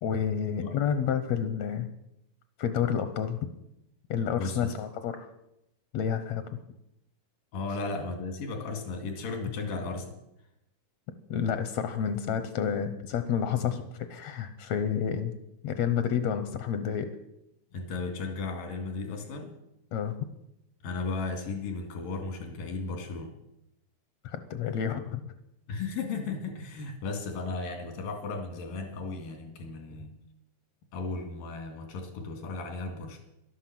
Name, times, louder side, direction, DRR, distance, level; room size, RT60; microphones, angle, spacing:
voice 1, 0.0-1.9 2.6-3.5 4.1-5.3 5.9-6.6 11.3-15.3 15.6-17.1 19.9-20.2 24.2-25.3, left 8 dB, 70° left, 10 dB, 1.6 m, -30 dB
voice 2, 4.3-4.7 7.5-10.2 17.7-19.6 20.8-23.3 25.7-30.1 30.9-33.2, left 3 dB, 90° left, 5 dB, 3.8 m, -35 dB
12.0 x 11.5 x 7.6 m, 0.85 s
omnidirectional pair, 3.9 m